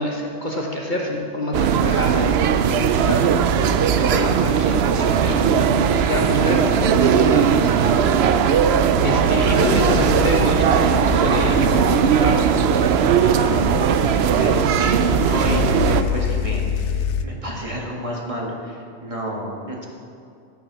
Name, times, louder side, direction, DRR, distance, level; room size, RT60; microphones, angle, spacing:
voice 1, 0.0-2.4 2.7-8.7 9.0-12.5, left 1 dB, 40° left, -1 dB, 1.2 m, -27 dB
sound 1, 1.5-16.0, right 7 dB, 65° right, 0.7 m, -18 dB
sound 2, 9.0-17.2, left 8 dB, 70° left, 0.9 m, -27 dB
voice 2, 13.3-19.8, right 1 dB, 25° right, -2 dB, 1.7 m, -30 dB
14.0 x 6.2 x 6.2 m, 2.5 s
omnidirectional pair, 1.3 m